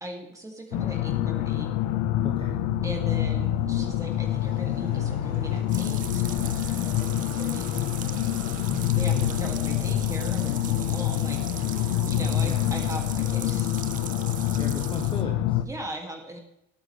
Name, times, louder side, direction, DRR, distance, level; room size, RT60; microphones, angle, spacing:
voice 1, 0.0-1.7 2.8-7.0 7.4-7.8 8.7-13.9 15.6-16.4, right 1 dB, 10° right, 2 dB, 2.1 m, -39 dB
sound 1, 0.7-15.6, left 12 dB, 75° left, 1.0 m, -26 dB
sound 2, 2.0-14.6, right 6 dB, 45° right, 1.4 m, -49 dB
voice 2, 2.2-2.6 8.7-9.3 12.0-12.6 14.6-15.6, left 4 dB, 15° left, 3 dB, 0.9 m, -34 dB
sound 3, 5.7-15.2, right 10 dB, 25° right, 0.4 m, -40 dB
18.5 x 9.2 x 3.2 m, 0.83 s
cardioid pair, 170°, 35 cm